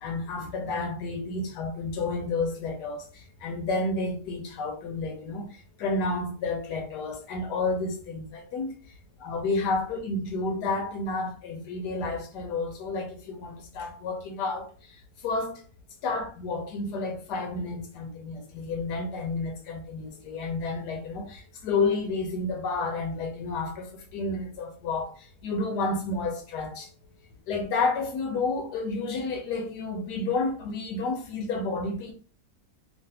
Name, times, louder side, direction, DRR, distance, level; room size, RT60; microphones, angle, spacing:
voice 1, 0.0-8.7 9.2-14.7 15.2-15.6 16.0-25.1 25.4-26.9 27.5-32.1, left 3 dB, 75° left, 1.4 m, -30 dB
3.2 x 2.6 x 2.8 m
omnidirectional pair, 1.8 m